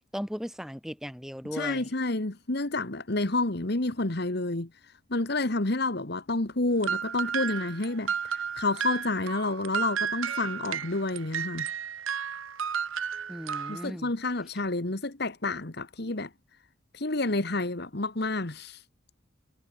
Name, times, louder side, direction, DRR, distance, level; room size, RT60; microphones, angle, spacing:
voice 1, 0.1-1.9 13.3-14.1, equal, ahead, 5.3 m, -37 dB
voice 2, 1.5-4.7 5.1-11.7 13.7-16.3 16.9-18.8, left 2 dB, 50° left, 1.5 m, -29 dB
sound 1, 6.8-13.9, right 7 dB, 75° right, 1.2 m, -33 dB
head